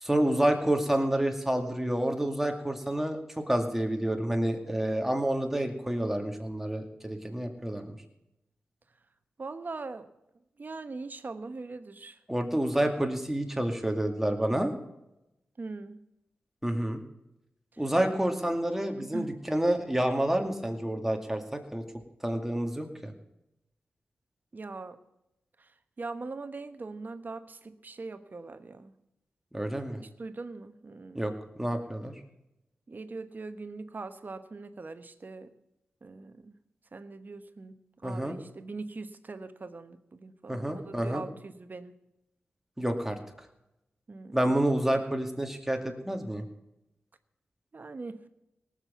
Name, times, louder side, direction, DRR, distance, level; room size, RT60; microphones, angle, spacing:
voice 1, 0.0-7.9 12.3-14.7 16.6-17.0 17.8-21.8 22.2-23.1 29.5-30.0 31.1-31.3 31.6-32.1 38.0-38.4 40.5-41.2 42.8-43.2 44.3-46.4, right 1 dB, 5° right, 4 dB, 2.3 m, -29 dB
voice 2, 9.4-10.1 10.6-12.2 15.6-16.0 19.0-19.3 24.5-25.0 25.6-25.7 26.0-28.9 30.0-31.4 32.9-35.5 36.0-36.5 36.9-41.9 44.1-44.6 47.7-48.2, right 3 dB, 50° right, 10 dB, 1.1 m, -41 dB
18.0 x 7.6 x 7.1 m, 0.89 s
cardioid pair, 50°, 4 cm